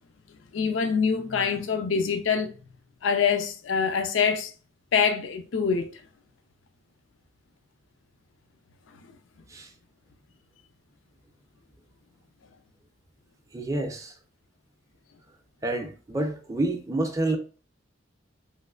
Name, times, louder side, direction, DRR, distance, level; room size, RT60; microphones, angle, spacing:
voice 1, 0.5-2.5 3.0-4.5 4.9-5.9, left 6 dB, 80° left, 0.4 m, -25 dB
voice 2, 13.5-14.1 15.6-17.4, right 2 dB, 15° right, 0.5 m, -28 dB
3.1 x 3.0 x 2.3 m
head